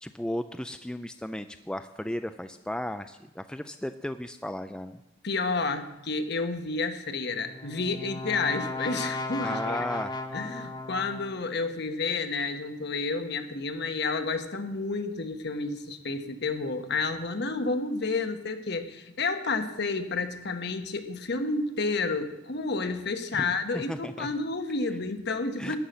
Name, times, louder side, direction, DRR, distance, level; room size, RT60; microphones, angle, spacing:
voice 1, 0.0-5.0 9.4-10.1 23.4-24.3 25.6-25.8, left 1 dB, 5° left, 9 dB, 0.3 m, -35 dB
voice 2, 5.2-9.8 10.3-25.8, left 3 dB, 55° left, 7 dB, 1.0 m, -30 dB
Brass instrument, 7.3-11.5, left 2 dB, 20° left, 0.8 m, -35 dB
13.0 x 5.7 x 9.2 m, 0.92 s
head